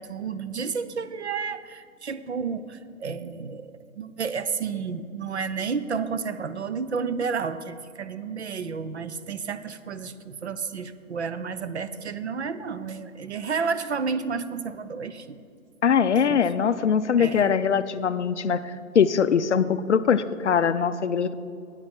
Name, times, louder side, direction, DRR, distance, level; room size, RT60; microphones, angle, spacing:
voice 1, 0.0-15.4 16.3-16.4 17.2-17.5, right 5 dB, 50° right, 13 dB, 0.6 m, -31 dB
voice 2, 15.8-18.6 18.9-21.3, left 7 dB, 55° left, 12 dB, 0.5 m, -22 dB
11.5 x 8.9 x 6.0 m, 2.4 s
hypercardioid pair, 175°, 42 cm